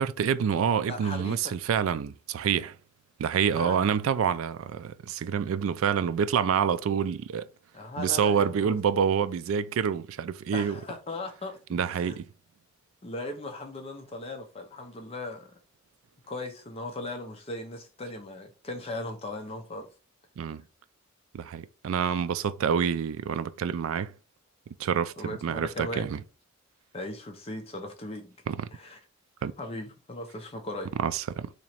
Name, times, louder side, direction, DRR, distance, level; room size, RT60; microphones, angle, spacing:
voice 1, 0.0-2.7 3.2-7.5 8.0-10.8 11.7-12.3 20.4-20.6 21.3-24.1 24.8-26.2 28.5-28.7 29.4-29.5 31.0-31.5, right 7 dB, 70° right, 0.3 m, -27 dB
voice 2, 0.9-1.5 3.5-3.9 7.7-8.8 10.5-11.6 11.9-12.2 13.0-15.5 16.3-19.9 25.2-26.1 26.9-28.3 28.7-29.0 29.6-30.9, left 1 dB, 30° left, 0.6 m, -38 dB
3.0 x 2.9 x 4.2 m
head